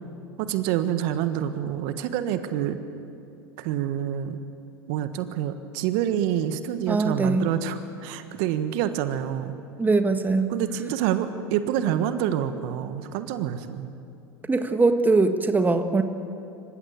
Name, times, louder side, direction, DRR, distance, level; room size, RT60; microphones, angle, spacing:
voice 1, 0.4-2.8 3.6-4.4 4.9-9.5 10.5-13.9, right 10 dB, 55° right, 10 dB, 1.4 m, -27 dB
voice 2, 6.9-7.5 9.8-10.5 14.5-16.0, right 3 dB, 15° right, 8 dB, 1.5 m, -21 dB
27.0 x 15.5 x 8.6 m, 2.7 s
hypercardioid pair, 95°, 13 cm